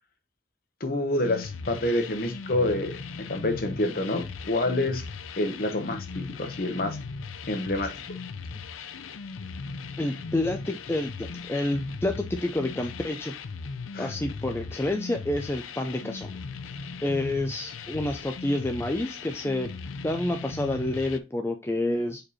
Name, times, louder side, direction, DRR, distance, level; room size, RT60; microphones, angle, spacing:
voice 1, 0.8-3.0 3.3-5.0 5.4-7.0 7.5-8.2 13.9-14.1, left 1 dB, 45° left, 1.0 m, -28 dB
sound 1, 1.2-21.2, left 4 dB, 85° left, 0.5 m, -38 dB
voice 2, 10.0-13.3 14.0-16.3 17.0-19.7 20.0-22.2, left 1 dB, 10° left, 0.4 m, -29 dB
5.2 x 4.5 x 4.1 m
head